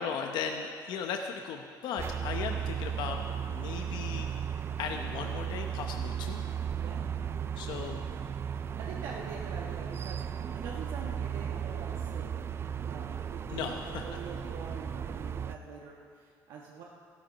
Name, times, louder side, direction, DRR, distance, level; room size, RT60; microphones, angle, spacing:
voice 1, 0.0-3.2 3.5-4.3 4.8-6.4 7.6-8.0 13.5-14.2, left 6 dB, 75° left, 4 dB, 0.8 m, -36 dB
sound 1, 2.0-15.6, right 8 dB, 35° right, 0.4 m, -35 dB
voice 2, 8.5-12.3 12.9-16.8, right 5 dB, 80° right, -3 dB, 1.4 m, -45 dB
14.5 x 12.5 x 5.2 m, 2.3 s
cardioid pair, 125°, 8 cm